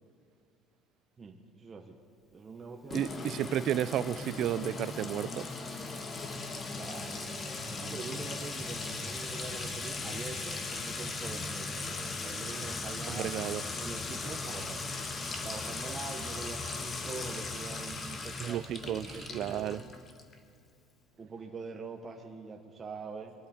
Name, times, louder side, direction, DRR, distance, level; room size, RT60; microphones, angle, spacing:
voice 1, 1.2-2.0 2.3-3.3 6.8-7.4 7.8-15.0 15.4-19.8 21.2-23.3, right 4 dB, 30° right, 2 dB, 1.1 m, -44 dB
Sink (filling or washing) / Trickle dribble / Fill (with liquid), 2.9-20.3, left 3 dB, 35° left, 1.5 m, -38 dB
voice 2, 2.9-5.5 13.1-13.6 18.4-19.8, right 12 dB, 60° right, 18 dB, 0.3 m, -33 dB
22.5 x 12.5 x 4.4 m, 2.6 s
supercardioid pair, 100°, 0 cm